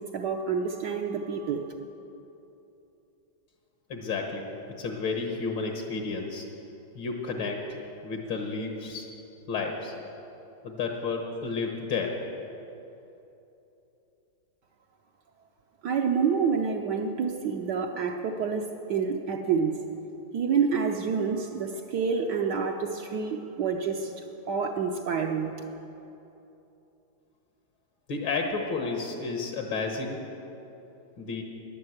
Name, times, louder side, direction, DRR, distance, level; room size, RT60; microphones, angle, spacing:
voice 1, 0.0-1.7 15.8-19.8 20.3-24.1 24.5-25.5, right 6 dB, 65° right, 2 dB, 1.3 m, -28 dB
voice 2, 3.9-4.5 4.8-6.5 7.0-7.7 8.0-9.1 9.5-9.9 10.6-12.2 28.1-30.3 31.2-31.4, left 4 dB, 75° left, 2 dB, 2.0 m, -31 dB
13.0 x 10.5 x 7.9 m, 2.9 s
omnidirectional pair, 2.1 m